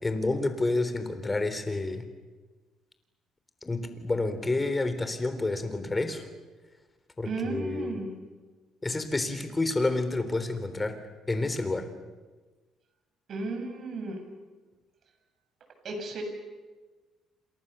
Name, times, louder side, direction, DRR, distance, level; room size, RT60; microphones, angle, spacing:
voice 1, 0.0-2.1 3.6-6.3 7.2-8.0 8.8-11.0 11.3-11.9, left 2 dB, 15° left, 9 dB, 3.7 m, -29 dB
voice 2, 7.2-8.1 13.3-14.2 15.8-16.2, right 3 dB, 50° right, 5 dB, 7.5 m, -34 dB
29.0 x 27.5 x 7.0 m, 1.3 s
cardioid pair, 125°, 0 cm